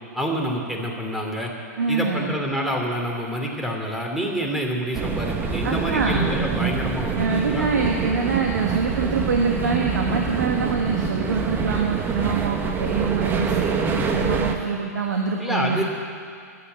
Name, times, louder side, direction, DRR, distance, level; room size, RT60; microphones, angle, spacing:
voice 1, 0.1-1.5 1.9-7.7 15.4-15.8, equal, 5° right, 0 dB, 2.6 m, -27 dB
voice 2, 1.8-2.4 5.6-6.3 7.2-15.8, right 5 dB, 80° right, 1 dB, 1.6 m, -25 dB
sound 1, 4.9-14.6, right 5 dB, 20° right, 1.2 m, -26 dB
11.5 x 10.0 x 9.6 m, 2.3 s
hypercardioid pair, 120°, 9 cm